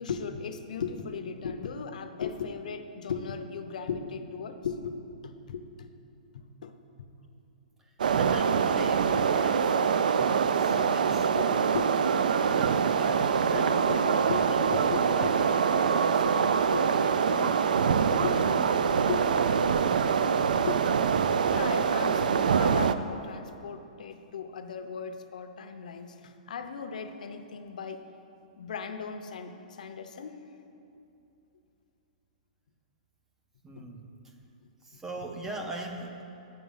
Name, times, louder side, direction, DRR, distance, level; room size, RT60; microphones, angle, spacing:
voice 1, 0.0-5.0 5.2-5.9 6.3-7.1 10.2-10.5 11.4-11.5 11.7-11.9 13.5-14.0 14.3-15.3 15.7-15.8 16.2-16.3 16.7-16.8 17.4-17.5 18.2-18.4 19.1-19.2 20.7-20.8 21.5-28.0 28.6-30.4 33.8-33.9, left 6 dB, 65° left, 8 dB, 0.6 m, -37 dB
sound 1, 8.0-22.9, right 6 dB, 80° right, 0.4 m, -24 dB
voice 2, 8.2-9.8 10.5-11.3 12.5-15.5 15.8-20.0 33.6-34.1 34.8-36.2, right 1 dB, 10° right, 3 dB, 0.4 m, -41 dB
8.0 x 6.1 x 5.5 m, 2.8 s
hypercardioid pair, 170°, 4 cm